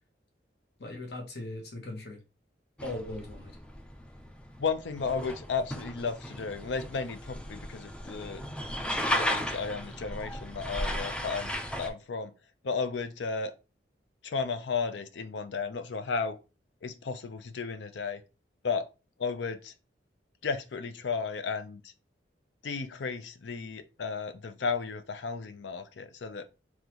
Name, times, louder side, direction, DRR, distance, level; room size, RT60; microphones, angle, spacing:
voice 1, 0.8-2.2 2.8-3.6, left 2 dB, 65° left, 1.0 m, -39 dB
sound 1, 2.8-11.9, equal, 5° left, 0.4 m, -35 dB
voice 2, 4.6-8.4 8.9-12.3 12.6-13.5 14.2-16.4 16.8-18.2 18.6-18.9 19.2-19.7 20.4-21.9 22.6-26.5, left 5 dB, 80° left, 0.5 m, -34 dB
3.8 x 2.9 x 2.9 m
head